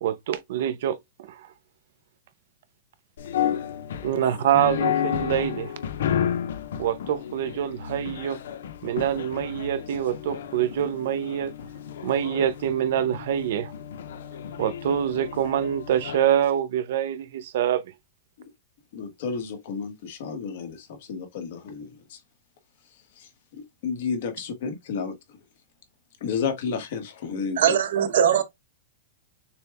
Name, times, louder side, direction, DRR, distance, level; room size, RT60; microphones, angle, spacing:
voice 1, 0.0-1.5 4.0-5.7 6.8-8.4 8.8-11.5 12.0-13.7 14.6-17.8, right 10 dB, 55° right, 0.5 m, -25 dB
sound 1, 3.2-16.5, left 9 dB, 85° left, 0.7 m, -32 dB
voice 2, 18.9-22.2 23.2-25.1 26.2-27.7, left 5 dB, 50° left, 1.4 m, -32 dB
voice 3, 27.6-28.4, right 9 dB, 75° right, 1.0 m, -20 dB
6.7 x 2.3 x 3.5 m
supercardioid pair, 175°, 0 cm